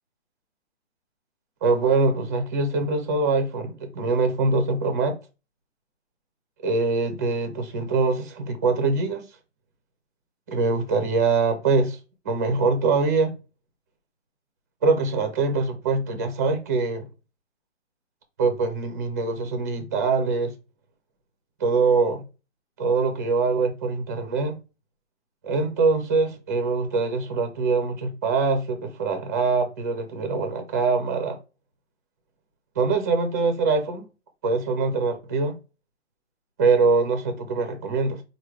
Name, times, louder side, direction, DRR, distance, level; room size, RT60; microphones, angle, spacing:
voice 1, 1.6-5.2 6.6-9.3 10.5-12.0 12.2-13.4 14.8-17.1 18.4-20.5 21.6-22.3 22.8-24.6 25.4-31.4 32.8-34.1 34.4-35.6 36.6-38.2, right 4 dB, 15° right, 0.5 m, -23 dB
4.6 x 2.2 x 4.7 m
hypercardioid pair, 160°, 35 cm